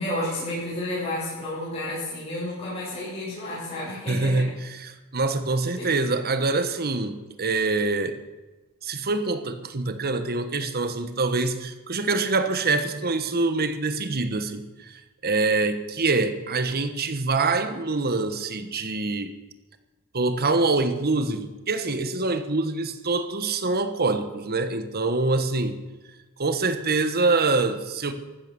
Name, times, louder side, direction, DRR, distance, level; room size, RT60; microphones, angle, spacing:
voice 1, 0.0-4.4 5.8-6.0, left 1 dB, 25° left, -9 dB, 7.3 m, -31 dB
voice 2, 4.1-8.2 8.8-19.3 20.1-25.8 26.4-28.1, right 3 dB, 45° right, 10 dB, 1.3 m, -25 dB
15.0 x 13.0 x 7.0 m, 1.2 s
head